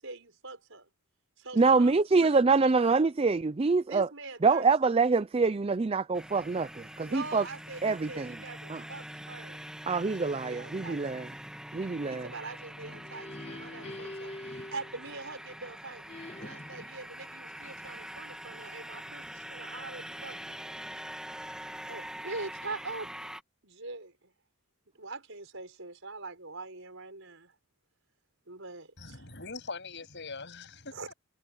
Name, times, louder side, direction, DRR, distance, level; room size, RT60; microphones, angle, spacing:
voice 1, 0.0-0.9 1.4-2.4 3.9-4.7 7.1-9.6 10.0-11.2 12.1-16.1 16.4-20.6 21.4-21.5 21.9-23.1 23.6-24.3 25.0-27.5 28.5-29.2 30.9-31.1, right 3 dB, 65° right, 6.2 m, -43 dB
voice 2, 1.6-4.1 4.4-7.4 7.8-8.4 8.7-8.8 9.9-11.3 11.7-12.3, right 4 dB, 25° right, 0.4 m, -25 dB
sound 1, 6.1-23.4, right 1 dB, 5° right, 1.7 m, -44 dB
sound 2, 12.6-15.6 16.1-17.0, left 1 dB, 30° left, 1.7 m, -45 dB
voice 3, 29.0-31.1, left 4 dB, 55° left, 7.9 m, -42 dB
head